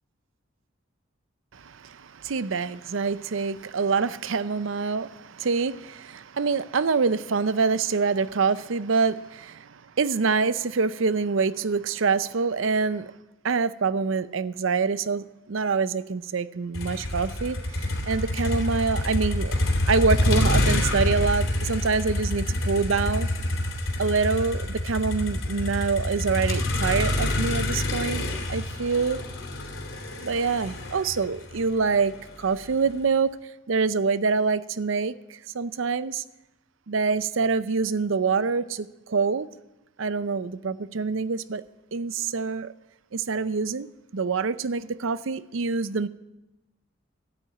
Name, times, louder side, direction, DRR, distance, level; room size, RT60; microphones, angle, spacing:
voice 1, 1.5-13.1 13.4-19.5 19.9-23.3 24.0-28.2 28.5-29.2 30.2-33.4 33.7-36.2 36.9-39.5 40.0-41.6 41.9-42.7 43.1-43.9 44.1-46.1, right 4 dB, 75° right, 0.6 m, -26 dB
Motor vehicle (road), 16.7-32.9, left 1 dB, 80° left, 2.9 m, -27 dB
14.0 x 8.9 x 8.8 m
head